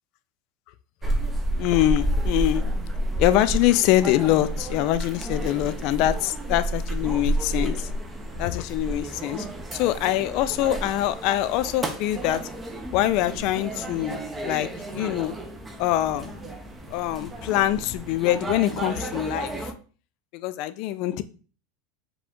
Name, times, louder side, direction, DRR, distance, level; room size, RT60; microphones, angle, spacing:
sound 1, 1.0-19.7, right 1 dB, 15° right, 0.6 m, -31 dB
voice 1, 1.6-2.6 3.2-7.9 8.4-9.5 9.7-12.4 12.9-14.7 14.9-15.3 15.8-16.3 16.9-19.7 20.3-21.2, left 14 dB, 55° left, 0.3 m, -24 dB
4.9 x 2.4 x 3.7 m
supercardioid pair, 130°, 0 cm